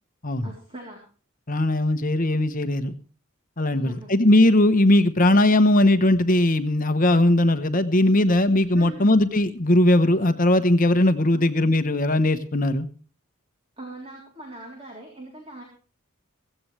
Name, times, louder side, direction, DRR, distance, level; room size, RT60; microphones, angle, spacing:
voice 1, 0.4-1.0 3.7-4.1 8.7-9.1 11.3-11.4 13.8-15.6, right 1 dB, 25° right, 0 dB, 3.4 m, -41 dB
voice 2, 1.5-2.9 3.6-12.9, left 1 dB, 40° left, 10 dB, 1.0 m, -19 dB
16.5 x 16.0 x 3.3 m, 0.38 s
head